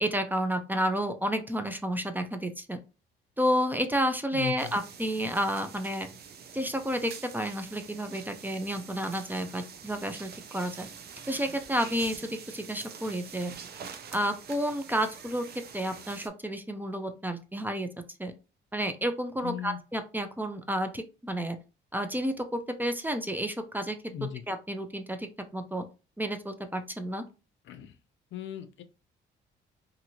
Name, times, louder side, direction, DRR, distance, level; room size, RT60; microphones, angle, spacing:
voice 1, 0.0-2.8 3.4-6.1 6.5-10.9 11.3-13.5 14.1-15.4 15.7-17.9 18.2-18.3 18.7-21.6 21.9-24.0 24.5-25.8 26.2-27.2, equal, 10° right, 7 dB, 0.4 m, -31 dB
voice 2, 4.3-4.8 19.4-19.8 24.1-24.4 27.6-28.0 28.3-28.8, left 10 dB, 70° left, 9 dB, 0.5 m, -37 dB
sound 1, 4.6-16.3, right 7 dB, 55° right, 0.6 m, -46 dB
2.8 x 2.6 x 2.7 m, 0.31 s
cardioid pair, 90°, 20 cm